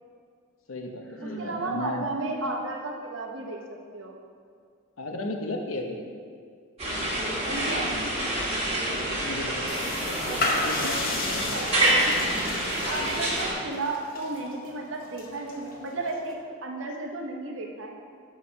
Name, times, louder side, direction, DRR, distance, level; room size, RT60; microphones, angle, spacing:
voice 1, 0.7-2.1 5.0-6.0 8.9-11.4 12.0-12.2, left 2 dB, 75° left, 3 dB, 0.9 m, -35 dB
Sigh, 1.0-1.7, right 1 dB, 5° left, 0.8 m, -40 dB
voice 2, 1.2-3.6 3.9-4.2 7.4-8.1 10.2-10.4 11.5-17.9, right 2 dB, 65° right, 1 dB, 0.9 m, -34 dB
sound 1, 6.8-13.5, right 1 dB, 30° right, 1.6 m, -27 dB
sound 2, 9.7-16.3, left 2 dB, 40° left, 0.8 m, -34 dB
6.9 x 4.9 x 5.6 m, 2.1 s
head